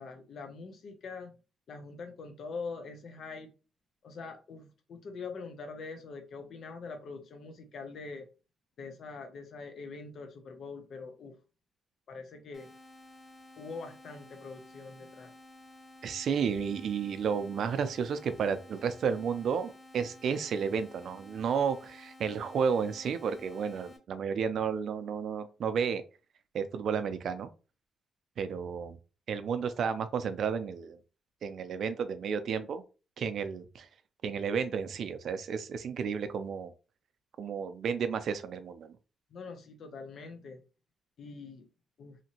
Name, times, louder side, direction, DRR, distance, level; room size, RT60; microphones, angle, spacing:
voice 1, 0.0-1.4 1.7-3.5 4.0-8.3 8.8-11.4 12.1-12.7 13.6-15.3 39.3-40.6 41.2-41.7 42.0-42.2, left 4 dB, 60° left, 0.5 m, -43 dB
sound 1, 12.5-24.0, left 1 dB, 5° left, 0.9 m, -53 dB
voice 2, 16.0-26.0 26.5-27.5 28.4-29.0 29.3-31.0 31.4-32.8 33.2-33.9 34.2-36.7 37.4-39.0, right 6 dB, 60° right, 0.4 m, -32 dB
2.8 x 2.5 x 2.7 m
cardioid pair, 120°, 0 cm